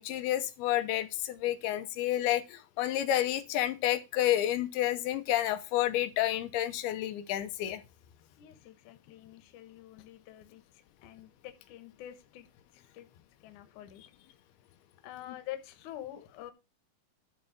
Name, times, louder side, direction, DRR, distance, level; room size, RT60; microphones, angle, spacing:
voice 1, 0.0-7.8, left 13 dB, 85° left, 2.8 m, -30 dB
voice 2, 8.4-10.6 11.0-12.5 12.9-13.1 13.4-14.0 15.0-16.5, left 12 dB, 65° left, 2.2 m, -46 dB
11.5 x 4.2 x 6.4 m
omnidirectional pair, 4.4 m